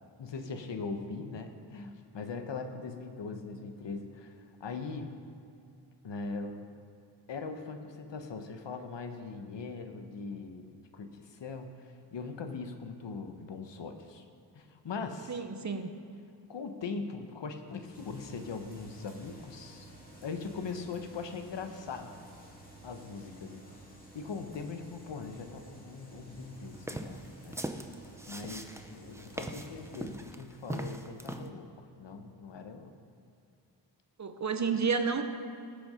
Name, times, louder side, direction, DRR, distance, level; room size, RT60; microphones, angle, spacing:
voice 1, 0.2-5.1 6.0-6.8 7.3-14.2 14.5-15.4 16.5-19.9 20.2-22.2 22.8-23.6 24.1-27.6 28.3-32.9, left 4 dB, 85° left, 6 dB, 1.1 m, -41 dB
voice 2, 15.3-15.9 34.2-35.2, right 5 dB, 40° right, 7 dB, 0.8 m, -30 dB
sound 1, 17.9-30.2, right 1 dB, 20° left, 2.5 m, -53 dB
sound 2, 26.7-31.5, right 1 dB, 5° right, 0.6 m, -40 dB
18.5 x 6.9 x 5.1 m, 2.5 s
wide cardioid pair, 135°, 42 cm